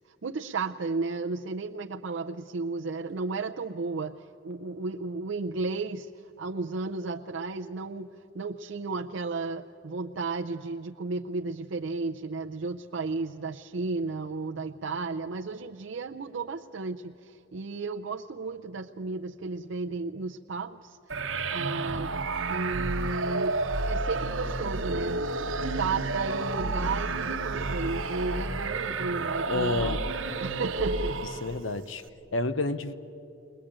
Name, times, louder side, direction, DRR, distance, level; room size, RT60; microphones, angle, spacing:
voice 1, 0.0-6.1 6.4-21.2 21.5-22.1 22.5-25.2 25.8-30.0 30.4-31.2, right 3 dB, 70° right, 3 dB, 0.5 m, -33 dB
sound 1, 21.1-31.7, right 3 dB, 90° right, 1.1 m, -30 dB
voice 2, 29.5-30.0 31.4-32.0 32.3-32.9, left 2 dB, 75° left, 12 dB, 0.7 m, -29 dB
21.0 x 20.5 x 8.8 m, 2.8 s
head